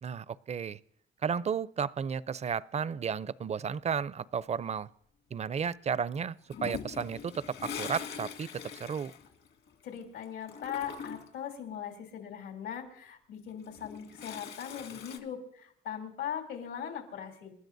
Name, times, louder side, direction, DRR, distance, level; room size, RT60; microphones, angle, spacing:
voice 1, 0.0-0.8 1.2-4.9 5.3-6.4 6.6-9.1, right 7 dB, 35° right, 19 dB, 0.5 m, -33 dB
Toilet flush, 6.5-10.0 10.2-11.4 13.5-15.2, left 7 dB, 70° left, 1.9 m, -42 dB
voice 2, 9.8-17.5, left 8 dB, 85° left, 1 dB, 3.1 m, -40 dB
29.0 x 12.5 x 2.7 m, 0.70 s
cardioid pair, 90°, 20 cm